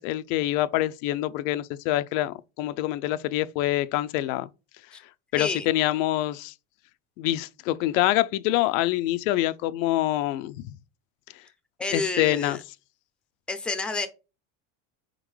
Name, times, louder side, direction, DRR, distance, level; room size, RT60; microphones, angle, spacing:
voice 1, 0.0-4.5 5.3-6.5 7.2-10.7 11.9-12.6, left 15 dB, 80° left, 0.5 m, -26 dB
voice 2, 5.3-5.7 11.8-12.6 13.5-14.1, left 3 dB, 5° left, 0.5 m, -29 dB
4.3 x 3.7 x 3.1 m
supercardioid pair, 120°, 40 cm